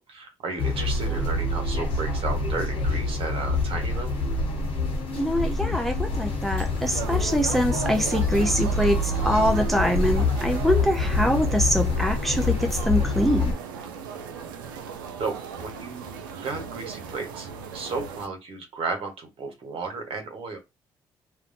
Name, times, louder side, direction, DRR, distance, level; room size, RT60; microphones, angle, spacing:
voice 1, 0.0-4.2 15.2-17.5 17.7-20.6, right 4 dB, 55° right, 1.1 m, -33 dB
sound 1, 0.6-13.5, left 2 dB, 55° left, 1.0 m, -26 dB
voice 2, 5.2-13.6, equal, ahead, 0.5 m, -24 dB
sound 2, 6.8-18.3, right 6 dB, 85° right, 0.4 m, -37 dB
2.5 x 2.2 x 2.6 m
hypercardioid pair, 45°, 11 cm